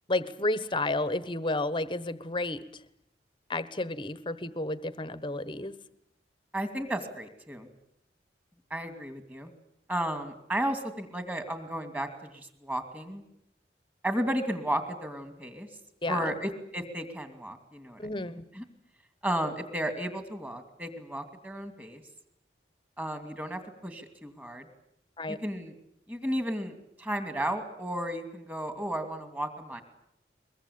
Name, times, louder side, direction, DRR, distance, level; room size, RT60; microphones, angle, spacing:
voice 1, 0.1-2.6 3.5-5.7 16.0-16.4 18.0-18.4 25.2-25.4, left 2 dB, 30° left, 14 dB, 1.2 m, -31 dB
voice 2, 6.5-7.7 8.7-9.5 9.9-12.1 12.3-13.2 14.0-15.7 16.1-18.0 18.3-18.6 19.2-22.0 23.0-24.7 25.3-25.7 26.1-29.8, right 1 dB, 10° right, 7 dB, 2.6 m, -33 dB
23.0 x 22.0 x 8.7 m, 0.75 s
head